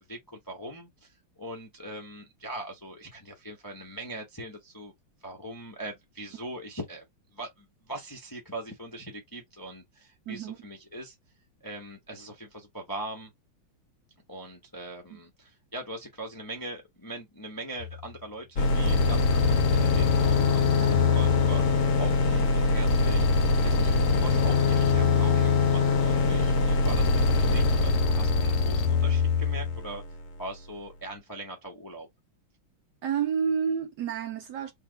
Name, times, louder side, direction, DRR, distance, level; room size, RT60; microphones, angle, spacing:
voice 1, 0.0-4.9 5.2-7.0 7.3-11.1 11.6-13.3 14.3-23.3 23.6-30.0 30.4-32.1, right 1 dB, 25° left, 0.5 m, -41 dB
voice 2, 10.3-10.6 15.1-15.2 20.7-20.9 33.0-34.7, right 7 dB, 70° right, 1.1 m, -30 dB
sound 1, 17.8-18.1 18.9-22.1 22.9-26.1 26.9-29.8, left 7 dB, 85° left, 1.5 m, -28 dB
sound 2, 18.6-30.4, left 3 dB, 60° left, 0.9 m, -24 dB
3.2 x 2.9 x 3.9 m
omnidirectional pair, 2.3 m